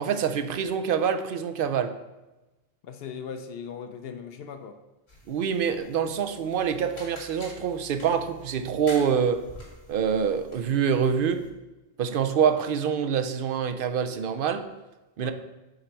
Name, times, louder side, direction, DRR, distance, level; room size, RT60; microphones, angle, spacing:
voice 1, 0.0-1.9 5.3-9.4 9.9-11.5 12.0-14.7 15.2-15.3, right 7 dB, 65° right, 9 dB, 0.7 m, -26 dB
voice 2, 2.8-4.8 15.2-15.3, left 6 dB, 75° left, 8 dB, 0.8 m, -38 dB
sound 1, 5.1-11.5, left 1 dB, 90° left, 2.2 m, -48 dB
7.8 x 4.0 x 4.5 m, 1.1 s
omnidirectional pair, 1.1 m